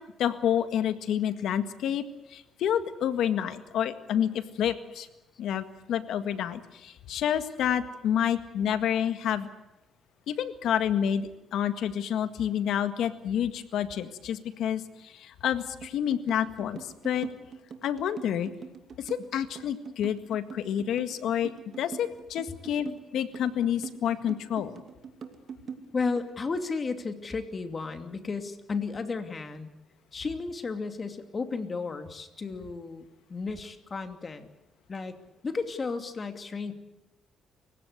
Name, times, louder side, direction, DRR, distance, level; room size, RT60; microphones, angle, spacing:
voice 1, 0.2-2.0 2.3-5.1 5.4-9.5 10.3-17.3 17.8-18.5 19.0-21.5 21.8-24.7, left 9 dB, 80° left, 10 dB, 1.8 m, -29 dB
sound 1, 15.8-26.3, right 6 dB, 55° right, 2.6 m, -42 dB
voice 2, 25.9-29.7 30.1-34.5 34.9-35.1 35.4-36.7, left 4 dB, 35° left, 7 dB, 2.7 m, -33 dB
29.0 x 16.5 x 8.2 m, 0.97 s
cardioid pair, 90°, 0 cm